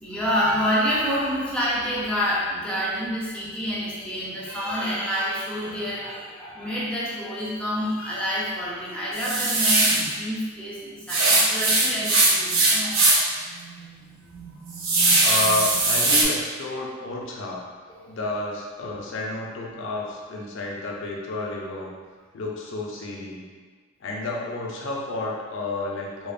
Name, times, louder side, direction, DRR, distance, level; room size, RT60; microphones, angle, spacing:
voice 1, 0.0-13.3 16.7-16.8 17.9-18.2 18.8-19.1, equal, 5° left, -8 dB, 0.5 m, -28 dB
sound 1, 9.1-10.1 11.1-13.4 13.8-13.9 14.3-16.2, right 2 dB, 80° right, 0.5 m, -20 dB
voice 2, 15.2-17.6 18.1-21.9 22.3-23.4 24.0-26.3, left 2 dB, 65° left, -2 dB, 0.4 m, -30 dB
2.8 x 2.0 x 2.4 m, 1.5 s
head